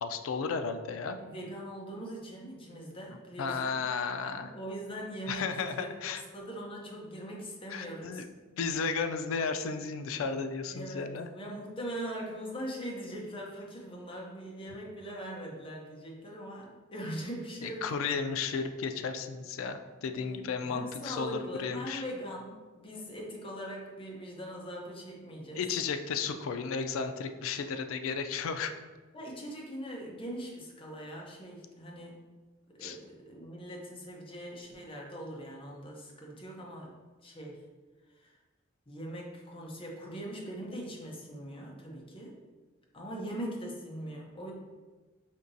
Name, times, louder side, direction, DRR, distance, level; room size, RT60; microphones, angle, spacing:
voice 1, 0.0-1.2 3.4-4.5 5.3-6.2 7.7-8.2 8.6-11.3 17.6-22.0 25.5-28.7 32.8-33.0, left 5 dB, 80° left, 8 dB, 0.3 m, -34 dB
voice 2, 1.2-3.8 4.4-5.5 5.8-8.2 10.7-17.9 20.1-25.6 29.1-32.2 32.7-36.9 37.2-37.6 38.1-38.4 38.9-42.3 42.9-44.5, equal, 25° left, -2 dB, 0.7 m, -41 dB
5.2 x 2.8 x 2.6 m, 1.3 s
head